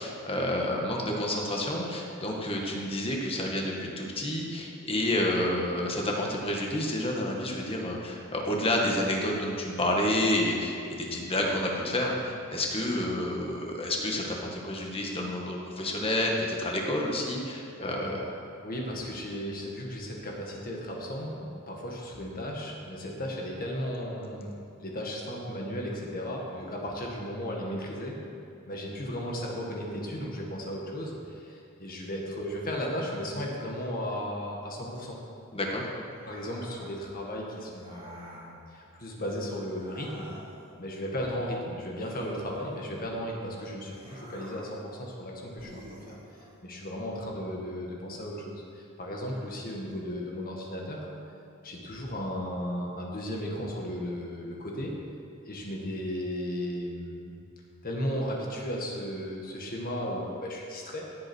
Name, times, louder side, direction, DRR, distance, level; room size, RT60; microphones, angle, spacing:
voice 1, 0.0-18.2 35.5-35.8, left 1 dB, 25° left, -1 dB, 1.8 m, -29 dB
voice 2, 17.8-18.3 18.6-24.5 24.8-28.2 28.7-35.2 36.3-40.3 40.8-46.2 46.6-51.1 51.6-54.9 55.5-57.3 57.8-61.1, equal, 45° left, -1 dB, 1.8 m, -35 dB
sound 1, 36.1-37.0 37.8-38.5 39.7-40.7 42.0-43.1 43.9-44.8 45.6-46.6, right 1 dB, 25° right, 2.4 m, -49 dB
17.0 x 8.6 x 4.6 m, 2.6 s
head